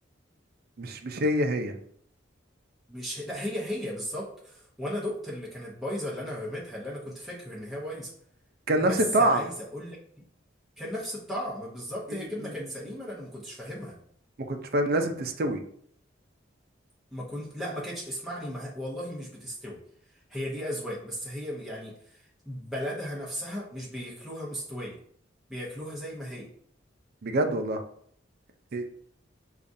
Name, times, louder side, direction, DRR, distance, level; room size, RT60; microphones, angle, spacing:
voice 1, 0.8-1.7 8.7-9.4 12.1-12.2 14.5-15.6 27.2-27.8 28.7-28.9, right 1 dB, 50° right, 5 dB, 0.5 m, -25 dB
voice 2, 2.9-8.1 8.8-10.0 10.8-14.0 17.1-19.8 20.3-25.0 25.5-26.5, equal, ahead, -6 dB, 0.9 m, -36 dB
6.7 x 2.4 x 2.6 m, 0.63 s
head